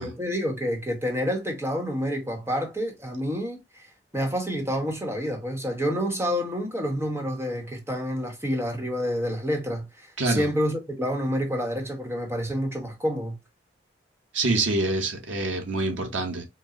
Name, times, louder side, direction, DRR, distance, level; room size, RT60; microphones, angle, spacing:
voice 1, 0.0-3.9 4.1-13.4, equal, 15° right, 1.1 m, -28 dB
voice 2, 10.2-10.5 14.3-16.5, right 2 dB, 85° right, 1.1 m, -26 dB
4.3 x 2.2 x 3.7 m
head